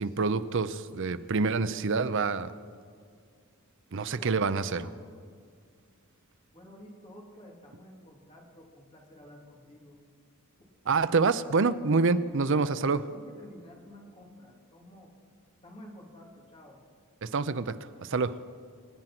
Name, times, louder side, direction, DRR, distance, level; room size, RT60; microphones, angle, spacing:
voice 1, 0.0-2.5 3.9-4.8 10.9-13.0 17.2-18.4, right 4 dB, 60° right, 13 dB, 0.6 m, -27 dB
voice 2, 4.1-5.0 6.5-10.0 12.7-15.1 15.6-16.8, equal, 25° left, 0 dB, 2.8 m, -50 dB
26.0 x 9.1 x 6.0 m, 2.2 s
head